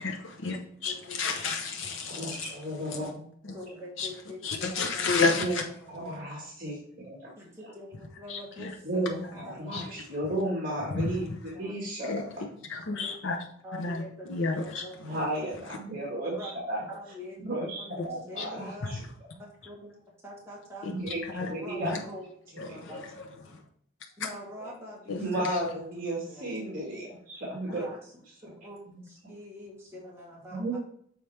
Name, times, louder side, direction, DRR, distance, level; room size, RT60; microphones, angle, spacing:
voice 1, 0.0-2.5 2.9-3.0 3.4-3.5 4.0-4.1 4.4-5.6 8.3-8.7 9.0-9.3 9.7-9.9 10.9-11.4 12.1-12.2 12.7-13.4 13.7-14.0 14.3-15.1 18.4-18.5 18.8-18.9 20.8-20.9 21.2-21.5 21.8-22.0 22.6-23.6 25.1-25.2 25.5-25.6, left 4 dB, 70° left, 2 dB, 0.7 m, -31 dB
voice 2, 0.9-1.2 1.8-2.1 3.5-4.4 4.7-5.1 5.6-5.7 7.4-10.3 11.5-11.7 13.0-13.1 13.6-15.0 15.3-15.4 16.3-16.5 16.9-17.5 17.8-18.9 19.4-19.9 20.2-21.0 21.5-22.2 22.6-23.0 23.5-23.6 24.2-25.6 26.3-26.5 27.7-28.0 28.4-30.8, equal, 15° right, -5 dB, 1.6 m, -45 dB
voice 3, 2.0-3.3 5.4-5.6 5.9-7.3 8.8-12.4 15.0-16.8 17.4-19.0 20.9-22.0 25.2-27.8 28.9-29.0 30.5-30.8, right 1 dB, 45° right, -4 dB, 1.8 m, -34 dB
6.9 x 4.5 x 3.3 m, 0.65 s
head